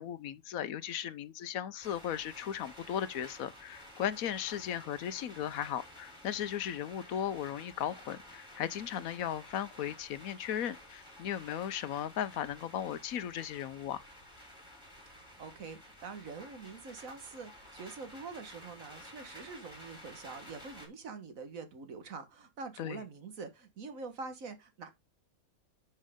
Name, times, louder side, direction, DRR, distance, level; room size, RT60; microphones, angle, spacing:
voice 1, 0.0-14.0 22.8-23.0, left 10 dB, 75° left, 1.2 m, -36 dB
sound 1, 1.8-20.9, left 1 dB, 15° left, 4.2 m, -53 dB
voice 2, 15.2-24.9, right 4 dB, 70° right, 1.8 m, -45 dB
10.5 x 5.5 x 3.6 m
omnidirectional pair, 1.5 m